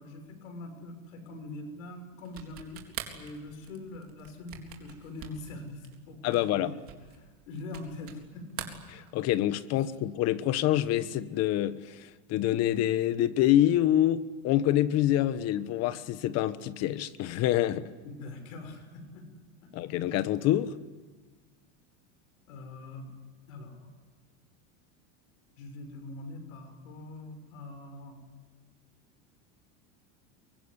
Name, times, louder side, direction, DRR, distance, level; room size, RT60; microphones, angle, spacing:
voice 1, 0.0-8.7 9.8-9.9 18.0-19.3 19.6-19.7 22.5-23.1 23.5-23.9 25.6-28.2, left 2 dB, 85° left, 7 dB, 6.4 m, -43 dB
sound 1, 2.2-8.2 8.5-9.5, right 11 dB, 35° right, 3.9 m, -44 dB
voice 2, 6.2-6.7 9.1-17.9 19.7-20.7, left 13 dB, 40° left, 14 dB, 1.3 m, -26 dB
24.0 x 23.5 x 10.0 m, 1.4 s
supercardioid pair, 155°, 38 cm